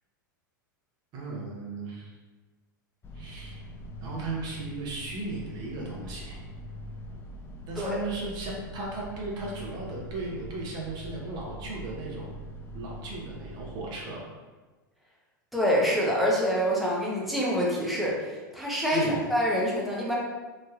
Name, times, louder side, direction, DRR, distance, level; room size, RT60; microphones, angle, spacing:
voice 1, 1.1-2.1 3.1-3.6 4.0-6.4 7.7-12.4 12.7-14.2 18.9-19.2, right 3 dB, 40° right, -3 dB, 0.9 m, -36 dB
sound 1, 3.0-13.8, equal, 20° left, 0.4 m, -43 dB
voice 2, 15.5-20.1, equal, ahead, -5 dB, 0.8 m, -26 dB
3.1 x 2.7 x 2.4 m, 1.3 s
hypercardioid pair, 100°, 11 cm